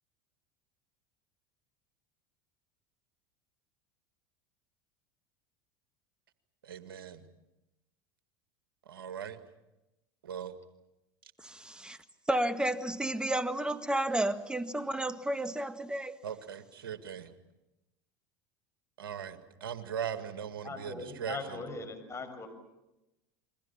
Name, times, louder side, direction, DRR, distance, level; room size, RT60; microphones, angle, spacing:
voice 1, 6.6-7.2 8.9-9.4 10.2-10.5 16.2-17.3 19.0-21.4, right 8 dB, 80° right, 2.0 m, -39 dB
voice 2, 11.4-12.0 12.3-16.2, right 1 dB, 5° right, 1.8 m, -32 dB
voice 3, 20.6-22.5, left 3 dB, 25° left, 6.7 m, -40 dB
30.0 x 22.0 x 7.2 m
hypercardioid pair, 80°, 12 cm